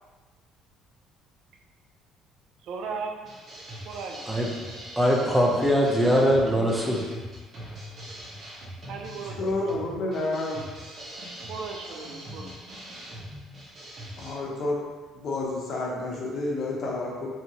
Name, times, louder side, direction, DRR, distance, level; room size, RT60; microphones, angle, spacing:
voice 1, 2.6-3.2 3.8-4.2 8.9-9.8 11.5-12.5, right 5 dB, 65° right, 2 dB, 0.4 m, -36 dB
sound 1, 3.2-14.3, equal, 40° right, 0.8 m, -41 dB
voice 2, 5.0-7.1, equal, 10° right, -1 dB, 0.4 m, -22 dB
voice 3, 9.4-10.6 14.2-14.8 15.1-17.3, left 2 dB, 55° left, -3 dB, 0.7 m, -29 dB
2.8 x 2.5 x 2.8 m, 1.3 s
cardioid pair, 120°, 0 cm